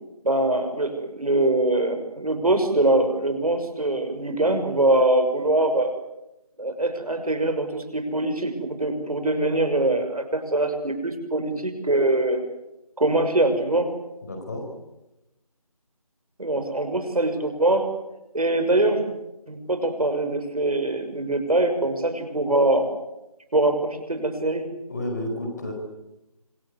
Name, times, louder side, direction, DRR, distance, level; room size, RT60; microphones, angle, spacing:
voice 1, 0.2-5.9 6.6-12.4 13.0-13.9 16.4-17.9 18.3-19.0 19.5-22.9 23.5-24.7, right 2 dB, 70° right, 7 dB, 6.1 m, -23 dB
voice 2, 14.2-14.7 24.9-25.7, left 1 dB, 30° left, 3 dB, 5.0 m, -31 dB
26.0 x 24.0 x 8.2 m, 0.95 s
figure-of-eight pair, 175°, 19 cm